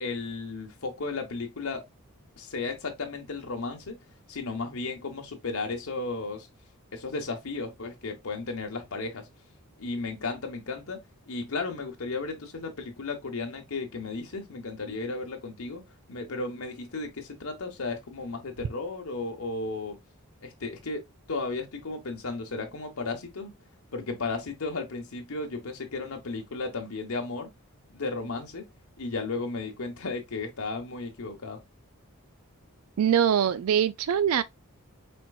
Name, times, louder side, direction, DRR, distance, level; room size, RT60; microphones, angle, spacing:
voice 1, 0.0-1.8 2.4-4.0 4.3-6.5 6.9-9.3 9.8-15.8 16.1-20.0 20.4-23.5 23.9-27.5 27.9-28.6 29.0-31.6, left 3 dB, 75° left, 1.1 m, -34 dB
voice 2, 33.0-34.4, right 9 dB, 80° right, 0.4 m, -23 dB
4.4 x 4.4 x 2.3 m
head